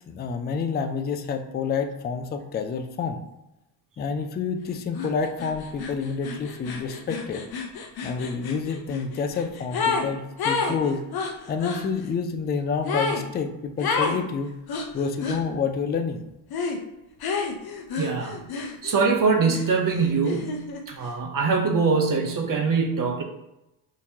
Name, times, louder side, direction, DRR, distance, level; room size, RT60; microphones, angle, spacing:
voice 1, 0.1-3.2 4.0-7.5 8.0-11.0 11.5-14.5 14.9-16.2, left 5 dB, 20° left, 7 dB, 0.3 m, -28 dB
sound 1, 5.0-5.1 5.4-10.1 10.4-11.9 12.9-13.3 13.8-14.2 14.7-15.4 16.5-16.8 17.2-19.1 19.5-20.8, left 4 dB, 50° left, 0.7 m, -30 dB
voice 2, 18.0-18.4 18.8-23.2, right 4 dB, 40° right, 2 dB, 0.6 m, -23 dB
3.6 x 2.8 x 2.7 m, 0.91 s
supercardioid pair, 60°, 50 cm